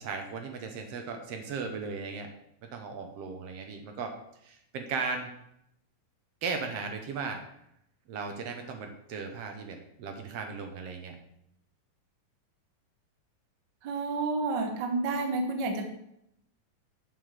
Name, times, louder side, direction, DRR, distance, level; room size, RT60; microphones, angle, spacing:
voice 1, 0.0-2.3 2.7-4.1 4.4-5.3 6.4-7.4 8.1-11.2, right 4 dB, 70° right, 5 dB, 1.6 m, -36 dB
voice 2, 13.8-15.9, right 3 dB, 85° right, 4 dB, 0.9 m, -30 dB
7.4 x 5.2 x 6.5 m, 0.77 s
omnidirectional pair, 3.8 m